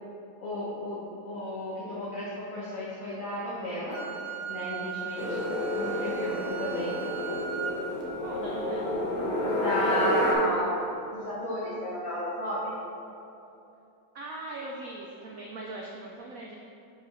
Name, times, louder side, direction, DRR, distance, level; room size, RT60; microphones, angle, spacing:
voice 1, 0.4-4.0 4.5-5.5 5.8-6.9 9.4-10.8 11.1-12.7, left 1 dB, 50° left, -9 dB, 1.5 m, -33 dB
Wind instrument woodwind instrument, 3.9-7.8, right 9 dB, 60° right, 1.0 m, -38 dB
sound 1, 5.2-10.3, left 1 dB, 65° left, 1.7 m, -30 dB
voice 2, 8.2-9.0 14.1-16.6, right 2 dB, 85° right, -1 dB, 0.7 m, -40 dB
5.0 x 4.9 x 5.6 m, 2.8 s
omnidirectional pair, 2.2 m